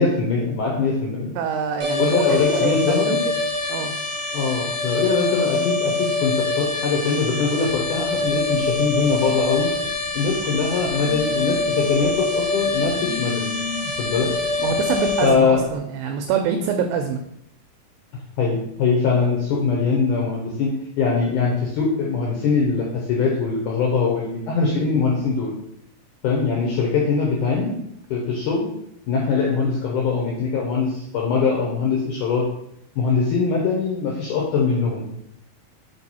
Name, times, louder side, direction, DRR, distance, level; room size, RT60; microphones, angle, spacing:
voice 1, 0.0-1.3 2.0-3.2 4.3-9.7 10.1-13.5 14.0-14.3 15.2-15.6 18.4-25.5 26.2-27.7 28.1-28.7 29.1-32.5 33.0-35.1, left 4 dB, 70° left, -2 dB, 2.2 m, -22 dB
voice 2, 1.4-3.3 3.7-3.9 14.6-17.2, right 6 dB, 80° right, 4 dB, 2.2 m, -25 dB
sound 1, 1.8-15.3, left 3 dB, 55° right, 2.3 m, -25 dB
Telephone, 7.7-15.7, left 3 dB, 40° left, 0.6 m, -38 dB
5.3 x 4.6 x 4.1 m, 0.76 s
omnidirectional pair, 4.2 m